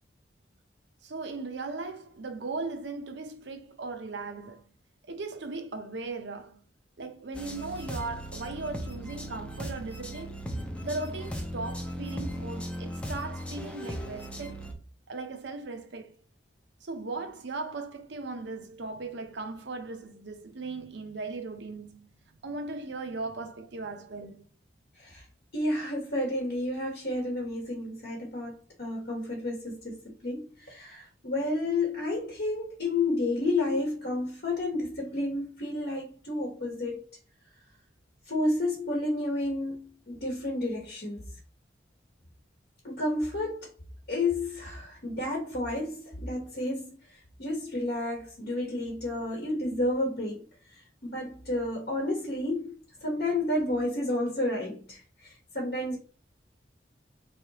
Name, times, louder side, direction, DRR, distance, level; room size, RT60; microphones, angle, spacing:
voice 1, 1.0-4.7 5.1-6.6 7.0-10.4 10.8-14.7 15.1-16.2 16.8-22.1 22.4-24.4, right 3 dB, 65° right, 0.7 m, -38 dB
sound 1, 7.3-14.7, equal, 5° left, 0.5 m, -37 dB
voice 2, 25.5-37.0 38.3-41.2 42.8-43.7 44.1-50.5 50.7-56.0, left 2 dB, 55° left, 1.0 m, -31 dB
3.8 x 3.2 x 2.9 m
head